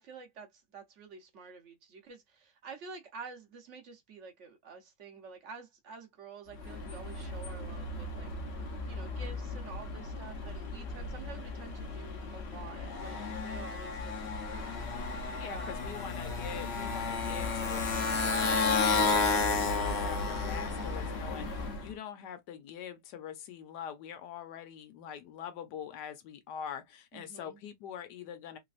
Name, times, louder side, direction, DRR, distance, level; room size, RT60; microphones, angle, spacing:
voice 1, 0.0-8.3 8.9-14.7 15.5-15.9 27.1-27.6, right 5 dB, 55° right, 1.0 m, -49 dB
Motorcycle, 6.5-21.9, left 4 dB, 50° left, 0.9 m, -33 dB
voice 2, 15.3-28.6, left 8 dB, 80° left, 1.3 m, -44 dB
3.3 x 3.1 x 2.4 m
omnidirectional pair, 1.8 m